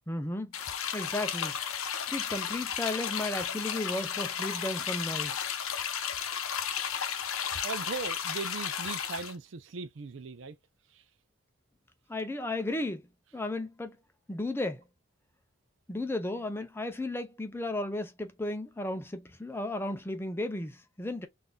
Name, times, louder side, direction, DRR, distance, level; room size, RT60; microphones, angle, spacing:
voice 1, 0.1-1.5 2.1-5.4 12.1-13.1 13.3-14.0 14.3-14.8 15.9-21.3, left 2 dB, 10° left, 0.5 m, -34 dB
sound 1, 0.5-9.3, left 8 dB, 80° left, 0.7 m, -34 dB
voice 2, 7.6-10.6 10.9-11.0, right 4 dB, 60° right, 0.5 m, -39 dB
3.8 x 2.6 x 2.3 m
head